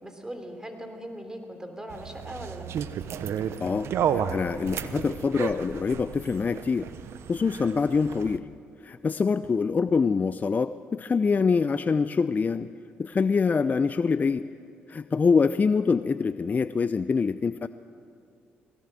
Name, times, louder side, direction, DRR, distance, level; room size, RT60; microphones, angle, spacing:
voice 1, 0.0-2.6, right 1 dB, 15° right, 6 dB, 3.5 m, -39 dB
sound 1, 1.9-8.4, right 8 dB, 65° right, 0.9 m, -32 dB
voice 2, 3.6-6.9 7.3-8.5 8.8-12.7 13.0-14.5 14.9-17.7, left 5 dB, 35° left, 13 dB, 0.5 m, -25 dB
20.0 x 17.5 x 7.8 m, 2.5 s
supercardioid pair, 55°, 5 cm